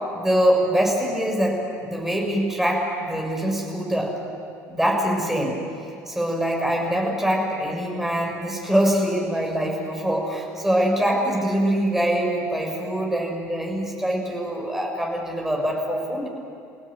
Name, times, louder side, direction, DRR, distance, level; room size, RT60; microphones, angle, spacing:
voice 1, 0.1-4.1 4.7-5.6 6.1-16.3, equal, 5° right, -1 dB, 7.1 m, -24 dB
30.0 x 16.5 x 9.7 m, 2.4 s
figure-of-eight pair, 60°, 9 cm